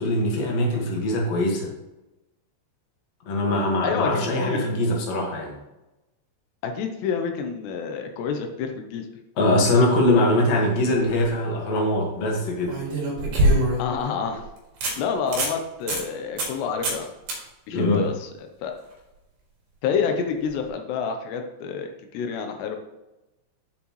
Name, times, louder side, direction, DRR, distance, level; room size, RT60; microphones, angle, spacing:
voice 1, 0.0-1.7 3.3-5.5 9.4-12.8 17.7-18.0, left 1 dB, 65° left, -1 dB, 1.7 m, -22 dB
voice 2, 3.8-4.7 6.6-9.1 13.8-14.4 15.0-17.1 17.7-18.7 19.8-22.8, left 6 dB, 80° left, 4 dB, 2.6 m, -28 dB
sound 1, 10.9-11.3 12.7-14.0 14.4-14.5 14.8-14.9 15.3-15.5 15.9-16.0 16.4-16.6 16.8-17.0 17.3-17.4 20.5-20.6, right 1 dB, 50° right, 3.3 m, -23 dB
10.5 x 7.5 x 3.1 m, 0.99 s
omnidirectional pair, 5.7 m